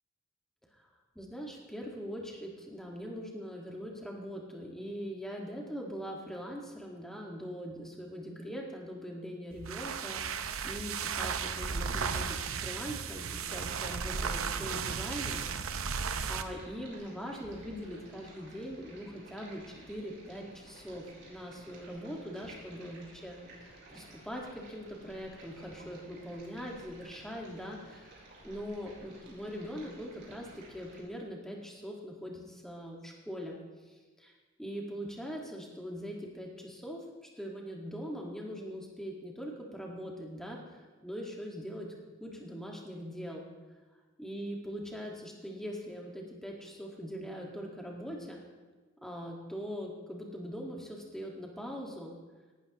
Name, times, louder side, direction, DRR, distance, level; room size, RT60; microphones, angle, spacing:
voice 1, 1.1-15.9 16.3-34.3 34.6-41.9 42.2-43.4 44.2-48.4 49.0-52.1, equal, ahead, -1 dB, 1.7 m, -42 dB
sound 1, 9.5-16.5, right 6 dB, 80° right, 0.7 m, -35 dB
Stream, 16.0-31.0, right 2 dB, 55° right, 4.0 m, -54 dB
17.5 x 12.5 x 3.0 m, 1.3 s
head